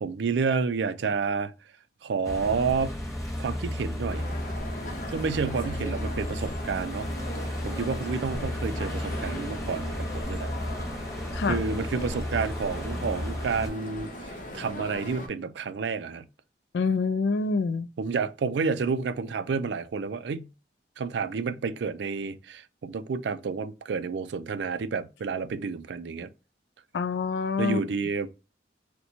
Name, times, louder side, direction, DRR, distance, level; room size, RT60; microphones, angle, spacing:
voice 1, 0.0-1.5 2.0-2.9 3.4-4.3 5.1-7.1 7.6-10.5 11.5-16.2 18.0-20.5 21.0-26.3 27.6-28.3, right 5 dB, 80° right, 0.4 m, -30 dB
sound 1, 2.2-13.7, left 1 dB, 15° left, 0.8 m, -33 dB
sound 2, 4.1-15.3, left 1 dB, 45° left, 0.8 m, -39 dB
voice 2, 16.7-17.9 26.9-27.8, left 4 dB, 75° left, 0.3 m, -26 dB
4.2 x 2.2 x 2.7 m
head